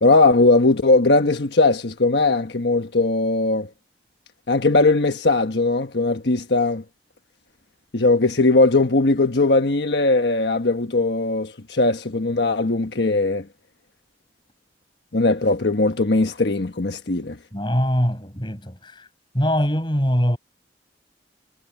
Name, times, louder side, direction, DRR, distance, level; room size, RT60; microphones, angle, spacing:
voice 1, 0.0-3.7 4.5-6.8 7.9-13.5 15.1-17.4, left 2 dB, 75° left, 1.2 m, -19 dB
voice 2, 17.5-19.1 19.3-20.4, equal, 25° left, 7.3 m, -22 dB
head